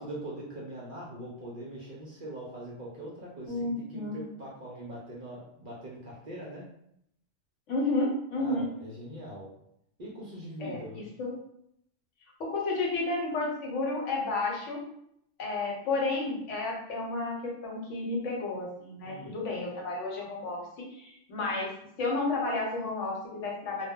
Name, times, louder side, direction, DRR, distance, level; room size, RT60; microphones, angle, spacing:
voice 1, 0.0-6.7 8.4-9.5 10.0-11.0 19.0-19.4, right 1 dB, 55° right, -4 dB, 0.6 m, -42 dB
voice 2, 3.5-4.2 7.7-8.7 10.6-11.3 12.4-14.8 15.4-21.7 22.0-23.9, left 2 dB, 70° left, -2 dB, 1.0 m, -31 dB
2.2 x 2.1 x 3.5 m, 0.75 s
omnidirectional pair, 1.3 m